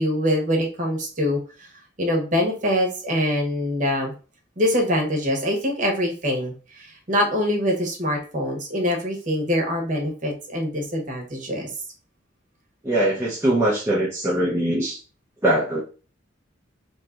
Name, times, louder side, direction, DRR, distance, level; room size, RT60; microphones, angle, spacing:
voice 1, 0.0-1.7 2.0-4.1 4.6-11.7, left 1 dB, 40° right, 1 dB, 1.0 m, -24 dB
voice 2, 12.8-15.0 15.4-15.8, right 1 dB, 15° right, -5 dB, 0.7 m, -22 dB
3.1 x 2.5 x 4.3 m, 0.37 s
head